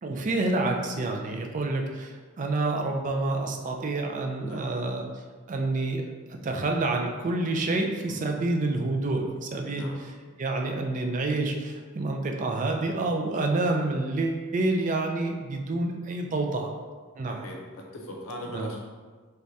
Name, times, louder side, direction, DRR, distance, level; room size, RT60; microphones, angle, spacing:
voice 1, 0.0-5.1 5.5-10.1 10.4-16.7 17.2-17.5 18.4-18.7, right 2 dB, 35° right, 2 dB, 0.4 m, -28 dB
voice 2, 4.4-4.7 8.1-8.3 9.7-10.0 13.6-13.7 17.3-18.8, equal, 70° left, 0 dB, 0.7 m, -40 dB
3.4 x 3.3 x 2.6 m, 1.5 s
head